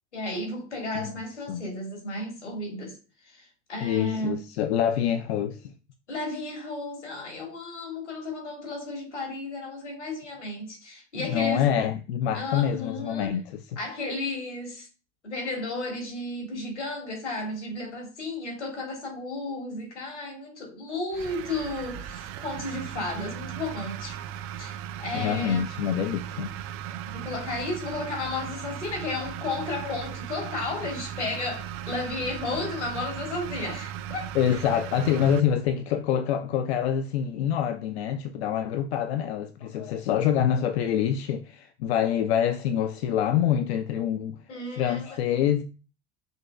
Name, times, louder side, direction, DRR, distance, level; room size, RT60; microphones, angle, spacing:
voice 1, 0.1-3.0 3.2-4.4 6.1-11.7 12.3-13.4 13.8-14.9 15.2-24.2 24.6-25.7 27.0-34.9 39.6-40.0 44.5-45.2, left 2 dB, 80° left, 1.7 m, -33 dB
voice 2, 3.8-5.7 11.2-13.4 25.1-26.5 34.3-44.4 44.8-45.6, left 9 dB, 65° left, 0.5 m, -26 dB
sound 1, 21.1-35.4, right 11 dB, 40° right, 0.4 m, -37 dB
5.4 x 2.9 x 2.2 m
figure-of-eight pair, 70°, 35 cm